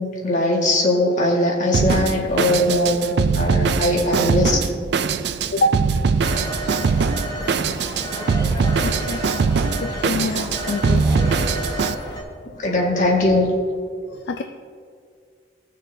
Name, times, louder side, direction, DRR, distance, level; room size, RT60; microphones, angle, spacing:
voice 1, 0.0-3.0 3.2-4.6 12.6-13.5, left 1 dB, 45° left, -2 dB, 1.6 m, -20 dB
Drum kit, 1.7-11.9, right 5 dB, 65° right, 0.4 m, -21 dB
Telephone, 6.2-12.2, equal, 20° left, 1.3 m, -31 dB
voice 2, 8.7-9.3 9.8-11.1 11.3-11.5 12.6-12.7 14.3-14.4, left 1 dB, 65° left, 6 dB, 0.4 m, -25 dB
16.0 x 6.5 x 2.6 m, 2.1 s
head